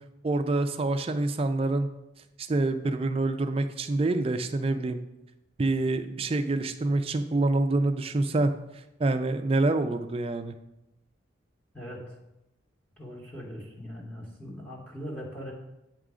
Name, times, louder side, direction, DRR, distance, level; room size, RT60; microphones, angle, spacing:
voice 1, 0.2-1.9 2.5-5.0 5.6-8.5 9.0-10.5, right 2 dB, 30° right, 9 dB, 0.4 m, -26 dB
voice 2, 11.7-12.1 13.0-15.5, equal, 10° left, -3 dB, 1.1 m, -40 dB
8.2 x 3.7 x 4.9 m, 0.91 s
head